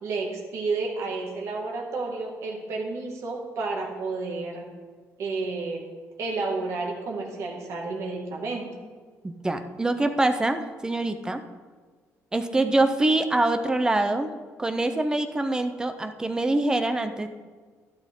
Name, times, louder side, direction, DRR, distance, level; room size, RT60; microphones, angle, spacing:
voice 1, 0.0-4.7 5.2-5.9 6.2-8.7, right 3 dB, 60° right, 0 dB, 2.2 m, -31 dB
voice 2, 9.2-11.4 12.3-14.3 14.6-17.3, right 2 dB, 15° right, 8 dB, 0.6 m, -24 dB
12.0 x 12.0 x 3.8 m, 1.5 s
cardioid pair, 160°, 5 cm